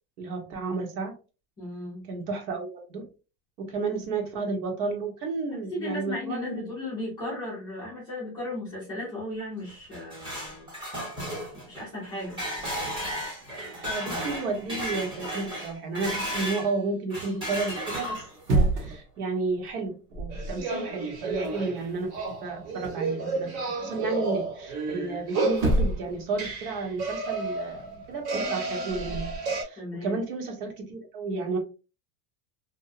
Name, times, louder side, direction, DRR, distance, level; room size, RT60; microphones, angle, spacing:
voice 1, 0.2-1.1 2.1-3.1 3.6-6.7 13.8-31.6, right 3 dB, 85° right, 3 dB, 1.1 m, -32 dB
voice 2, 1.6-2.1 5.5-10.7 11.7-12.4 14.0-14.3 20.5-20.7 29.8-30.2, left 1 dB, 10° left, -8 dB, 0.3 m, -36 dB
sound 1, 9.7-16.7 17.1-18.5, equal, 10° right, 0.8 m, -34 dB
sound 2, 10.4-10.8 11.4-11.5 11.8-16.1 18.2-19.1 19.5-19.7 20.1-20.7 20.9-23.1 25.1-25.2 25.5-26.2 26.5-29.4, right 2 dB, 40° right, 0.7 m, -32 dB
sound 3, 20.3-29.6, right 3 dB, 60° right, 1.0 m, -32 dB
2.6 x 2.2 x 2.5 m, 0.32 s
supercardioid pair, 165°, 45 cm